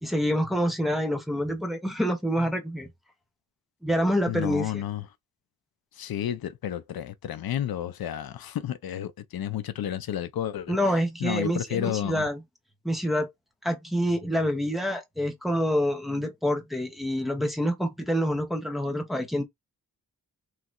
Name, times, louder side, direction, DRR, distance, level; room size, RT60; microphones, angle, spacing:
voice 1, 0.0-2.9 3.8-4.8 10.7-12.4 12.8-13.3 13.6-19.4, equal, ahead, 0.8 m, -27 dB
voice 2, 4.3-5.0 6.0-10.8 11.2-12.3, left 11 dB, 90° left, 0.5 m, -31 dB
3.2 x 2.8 x 2.5 m
wide cardioid pair, 150°, 35 cm